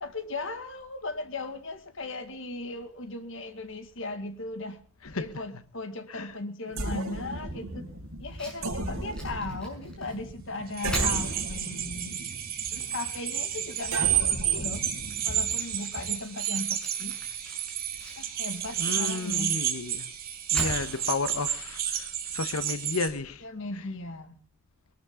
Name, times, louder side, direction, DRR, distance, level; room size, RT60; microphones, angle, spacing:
voice 1, 0.0-4.8 5.1-7.9 8.2-12.2 12.7-14.8 15.2-17.2 18.2-19.6 23.4-24.4, left 2 dB, 60° left, 2.0 m, -37 dB
voice 2, 5.0-5.6 6.1-6.4 18.8-20.0 20.5-23.4 23.7-23.9, left 3 dB, 85° left, 1.2 m, -33 dB
sound 1, 6.7-15.7, right 1 dB, 75° right, 5.6 m, -36 dB
Fire, 8.2-22.8, equal, 5° left, 6.3 m, -44 dB
sound 2, 10.7-23.1, right 10 dB, 45° right, 2.7 m, -31 dB
22.5 x 13.0 x 3.8 m
head